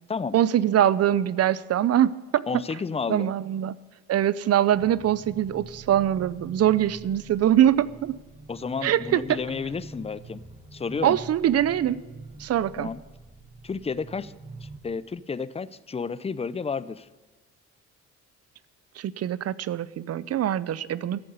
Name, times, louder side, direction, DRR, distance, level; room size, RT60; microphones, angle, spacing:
voice 1, 0.3-2.4 3.1-3.7 4.1-8.2 8.8-9.4 11.0-12.0 12.4-12.9 19.0-21.2, right 11 dB, 55° right, 19 dB, 0.6 m, -23 dB
voice 2, 2.5-3.3 8.5-10.4 10.7-11.2 12.8-13.0 13.6-14.3 14.6-17.1, left 5 dB, 20° left, 17 dB, 0.5 m, -31 dB
sound 1, 4.7-14.8, right 2 dB, 20° right, 1.7 m, -45 dB
13.5 x 7.6 x 9.4 m, 1.3 s
cardioid pair, 90°, 30 cm